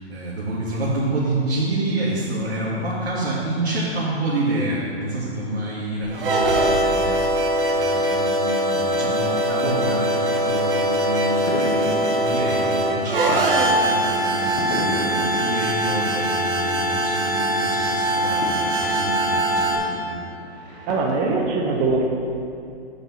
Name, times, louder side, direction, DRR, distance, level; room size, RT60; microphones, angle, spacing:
voice 1, 0.0-7.4 7.7-20.2, right 2 dB, 85° right, -8 dB, 2.2 m, -28 dB
sound 1, 6.0-19.8, right 1 dB, 55° right, 1.3 m, -22 dB
sound 2, 9.9-21.1, left 2 dB, 25° left, 1.0 m, -36 dB
voice 2, 20.9-22.1, right 3 dB, 20° right, 1 dB, 0.8 m, -21 dB
8.4 x 5.4 x 5.8 m, 2.5 s
hypercardioid pair, 150°, 33 cm